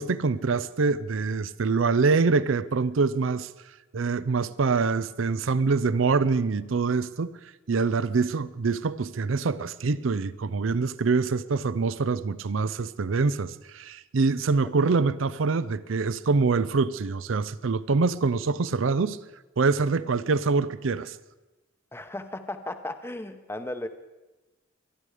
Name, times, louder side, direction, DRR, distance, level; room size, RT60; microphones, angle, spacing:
voice 1, 0.0-3.5 3.9-7.4 7.7-19.2 19.6-21.2, right 4 dB, 90° right, 0.6 m, -25 dB
voice 2, 21.9-23.9, left 1 dB, 10° left, 0.8 m, -35 dB
23.0 x 11.0 x 4.9 m
head